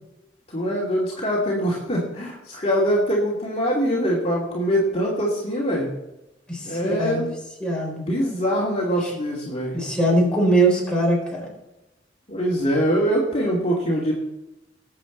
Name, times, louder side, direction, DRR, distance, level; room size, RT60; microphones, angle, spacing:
voice 1, 0.5-5.9 6.6-7.3 7.9-9.8 12.3-14.1, equal, 35° left, -4 dB, 2.7 m, -23 dB
voice 2, 6.5-7.3 7.6-8.1 9.0-9.1 9.7-11.5, right 1 dB, 5° left, -3 dB, 4.5 m, -21 dB
20.0 x 7.9 x 4.0 m, 0.96 s
head